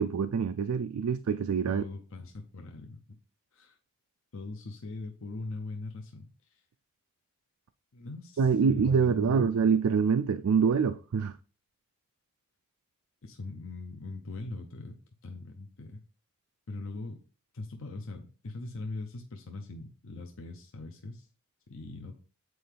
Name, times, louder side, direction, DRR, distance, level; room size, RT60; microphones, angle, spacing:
voice 1, 0.0-1.8 8.4-11.4, right 6 dB, 90° right, 0.4 m, -25 dB
voice 2, 1.7-3.2 3.5-3.8 4.3-6.6 7.9-9.5 13.2-16.0 16.7-17.2 17.5-21.3 21.7-22.1, left 2 dB, 70° left, 0.8 m, -41 dB
7.9 x 4.5 x 3.4 m
head